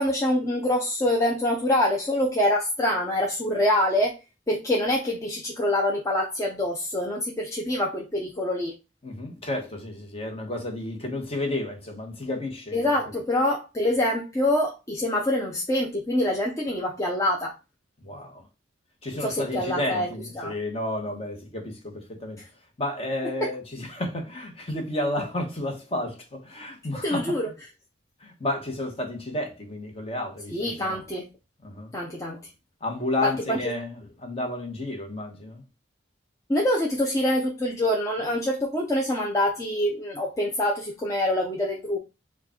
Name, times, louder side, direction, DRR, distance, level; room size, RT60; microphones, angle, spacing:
voice 1, 0.0-4.2 4.5-8.7 12.7-17.5 19.2-20.1 20.4-20.5 23.4-23.5 27.0-27.5 30.5-31.2 31.9-32.4 33.2-33.6 36.5-42.0, left 1 dB, 15° left, 0.6 m, -25 dB
voice 2, 9.0-12.9 18.0-18.5 19.0-22.4 22.8-27.5 28.2-31.0 31.6-31.9 32.8-35.6, left 1 dB, 30° left, 1.1 m, -31 dB
4.7 x 2.4 x 4.3 m
head